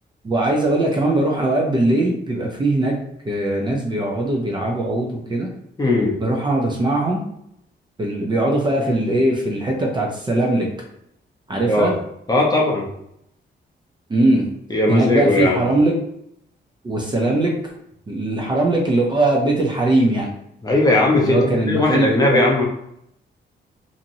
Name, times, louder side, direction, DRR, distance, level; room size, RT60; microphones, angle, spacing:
voice 1, 0.2-2.9 3.2-5.5 6.2-7.2 8.0-10.7 11.5-11.9 14.1-14.4 14.9-15.9 16.8-17.5 18.1-20.3 21.2-22.4, right 2 dB, 25° right, -1 dB, 0.5 m, -20 dB
voice 2, 5.8-6.1 11.7-11.9 12.3-12.9 14.7-15.6 20.6-21.4 21.6-22.6, left 2 dB, 20° left, -2 dB, 0.6 m, -18 dB
2.9 x 2.6 x 2.6 m, 0.74 s
wide cardioid pair, 155°, 19 cm